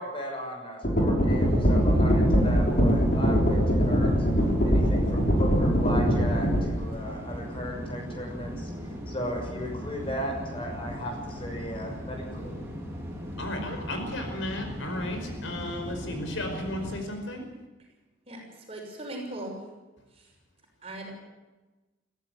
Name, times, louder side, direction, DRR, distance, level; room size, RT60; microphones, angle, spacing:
voice 1, 0.0-4.2 4.6-8.7 9.1-12.5, equal, 25° left, 1 dB, 6.2 m, -36 dB
sound 1, 0.8-6.6, equal, 45° left, 6.0 m, -22 dB
sound 2, 1.3-17.0, equal, 15° right, 4.1 m, -38 dB
voice 2, 13.4-17.4, left 1 dB, 75° left, 4 dB, 5.1 m, -34 dB
voice 3, 18.7-19.5 20.2-20.3 20.8-21.1, right 1 dB, 30° right, 0 dB, 6.1 m, -38 dB
22.0 x 15.5 x 8.5 m, 1.2 s
head